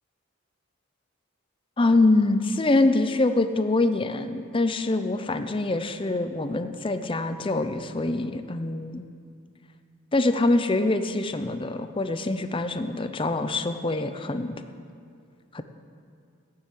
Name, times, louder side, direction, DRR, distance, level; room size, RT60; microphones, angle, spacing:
voice 1, 1.8-9.1 10.1-14.6 15.5-15.6, left 2 dB, 25° left, 9 dB, 0.6 m, -24 dB
12.5 x 7.8 x 8.5 m, 2.3 s
head